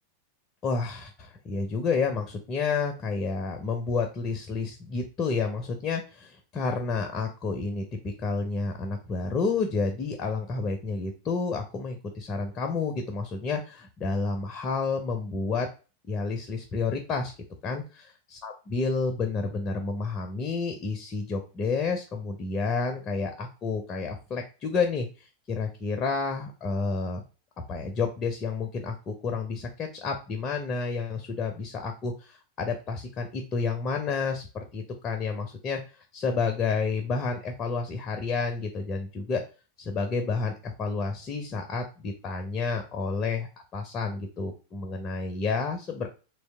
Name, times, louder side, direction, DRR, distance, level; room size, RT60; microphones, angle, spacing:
voice 1, 0.6-7.8 8.2-15.7 16.1-17.3 17.6-18.1 18.4-27.2 27.7-34.5 34.7-35.8 36.1-39.4 39.8-46.1, left 4 dB, 30° left, 5 dB, 0.6 m, -30 dB
3.1 x 2.7 x 3.2 m, 0.32 s
figure-of-eight pair, 90°, 0 cm